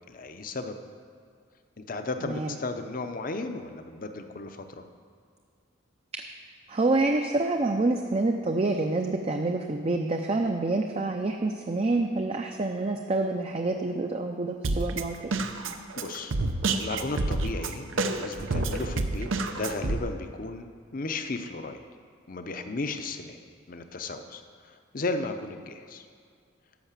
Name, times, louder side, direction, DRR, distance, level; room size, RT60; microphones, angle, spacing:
voice 1, 0.1-0.8 1.8-4.8 16.0-16.3 16.7-21.8 22.3-23.4 23.7-26.1, left 3 dB, 45° left, 7 dB, 0.7 m, -35 dB
voice 2, 2.2-2.6 6.1-6.2 6.7-15.3, right 2 dB, 30° right, 3 dB, 0.5 m, -27 dB
Drum kit, 14.6-20.0, right 2 dB, 85° right, 0.7 m, -29 dB
12.5 x 5.8 x 7.3 m, 2.2 s
head